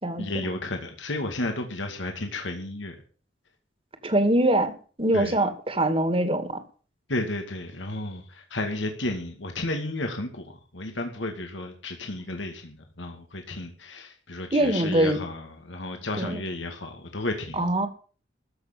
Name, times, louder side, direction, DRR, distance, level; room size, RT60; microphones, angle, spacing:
voice 1, 0.2-2.9 5.1-5.4 7.1-10.4 10.7-17.6, left 2 dB, 80° left, 2.2 m, -32 dB
voice 2, 4.0-4.7 5.0-6.6 14.5-15.2 16.2-16.4 17.5-17.9, right 1 dB, 30° right, 2.2 m, -23 dB
14.5 x 6.7 x 9.5 m
head